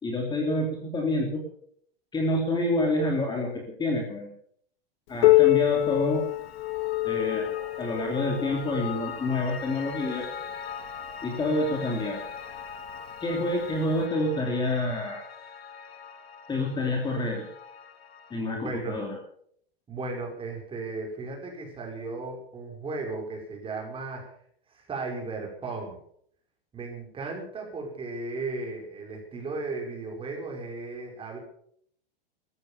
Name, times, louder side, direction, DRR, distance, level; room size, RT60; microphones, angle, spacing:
voice 1, 0.0-1.4 2.1-4.3 5.1-6.2 7.0-7.5 7.8-10.2 11.2-12.2 13.2-15.2 16.5-17.4 18.3-19.2, left 1 dB, 15° left, 1 dB, 3.0 m, -28 dB
Piano, 5.2-10.5 11.4-11.5 12.0-12.1 12.9-13.0 14.0-14.1, left 19 dB, 55° left, 0.7 m, -25 dB
Piano 2, 6.0-18.4, left 6 dB, 90° left, 3.0 m, -41 dB
voice 2, 18.4-19.0 19.9-24.3 24.7-26.0 26.7-31.4, right 3 dB, 20° right, 1 dB, 5.3 m, -35 dB
14.0 x 13.5 x 7.0 m, 0.63 s
supercardioid pair, 145°, 30 cm